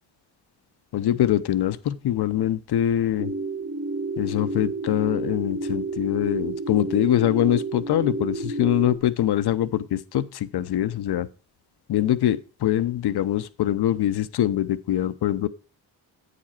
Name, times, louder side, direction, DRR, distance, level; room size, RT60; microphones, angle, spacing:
voice 1, 0.9-3.3 4.2-11.3 11.9-15.5, left 12 dB, 55° left, 0.7 m, -23 dB
sound 1, 3.2-9.0, right 2 dB, 30° right, 1.8 m, -30 dB
8.4 x 5.0 x 4.3 m
supercardioid pair, 45°, 48 cm